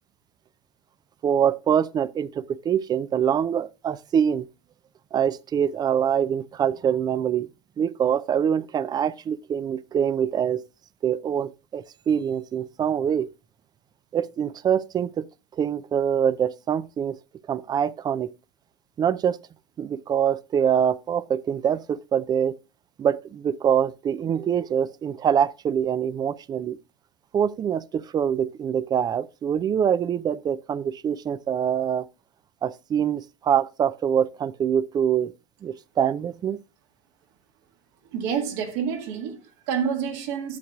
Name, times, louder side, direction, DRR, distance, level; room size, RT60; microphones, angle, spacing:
voice 1, 1.2-4.5 5.1-7.5 7.8-10.6 11.0-13.3 14.1-15.2 15.6-17.2 17.5-18.3 19.0-19.4 19.8-22.5 23.0-26.8 27.3-32.0 32.6-35.3 35.6-36.6, right 8 dB, 25° right, 0.4 m, -24 dB
voice 2, 38.1-40.6, right 7 dB, 60° right, 1.8 m, -28 dB
11.5 x 7.8 x 2.4 m
hypercardioid pair, 90°, 17 cm